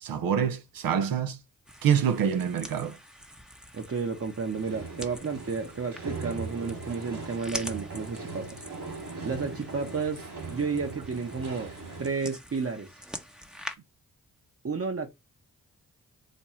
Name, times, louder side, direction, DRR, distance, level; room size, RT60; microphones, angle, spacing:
voice 1, 0.0-1.4 1.8-3.0, right 8 dB, 85° right, 0.7 m, -26 dB
sound 1, 1.7-13.8, equal, ahead, 0.7 m, -45 dB
voice 2, 3.7-8.6 9.2-11.7 12.0-12.9 14.6-15.1, right 5 dB, 40° right, 1.0 m, -32 dB
sound 2, 4.5-12.1, right 4 dB, 60° right, 2.8 m, -40 dB
4.2 x 2.3 x 3.1 m
cardioid pair, 55°, 34 cm